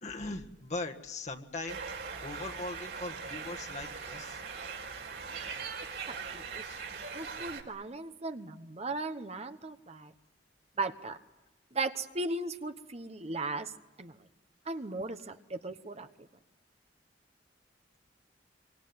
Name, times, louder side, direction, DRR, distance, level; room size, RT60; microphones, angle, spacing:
voice 1, 0.0-1.8 2.2-4.4 6.6-6.8, left 2 dB, 40° left, 4 dB, 1.7 m, -40 dB
sound 1, 1.7-7.6, right 5 dB, 65° right, 4.2 m, -41 dB
voice 2, 6.1-6.6 6.9-10.1 10.8-11.2 11.7-13.7 14.0-14.2 14.6-16.3, right 3 dB, 35° right, 9 dB, 1.1 m, -37 dB
25.5 x 24.5 x 9.5 m, 1.0 s
head